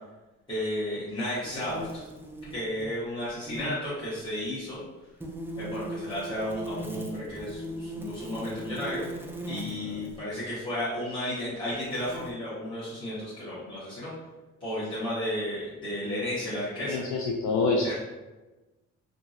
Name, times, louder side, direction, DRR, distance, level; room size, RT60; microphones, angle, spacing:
voice 1, 0.5-2.0 2.5-4.8 5.6-9.0 9.5-14.1 14.6-17.0 17.8-17.9, left 1 dB, 15° left, -12 dB, 1.2 m, -33 dB
sound 1, 1.4-3.0 3.3-3.8 5.2-10.2 11.1-11.2 11.7-12.3, right 1 dB, 10° right, 0.4 m, -39 dB
voice 2, 9.5-10.0 16.8-17.9, left 3 dB, 70° left, 0 dB, 0.4 m, -28 dB
2.8 x 2.6 x 2.6 m, 1.1 s
cardioid pair, 90°, 30 cm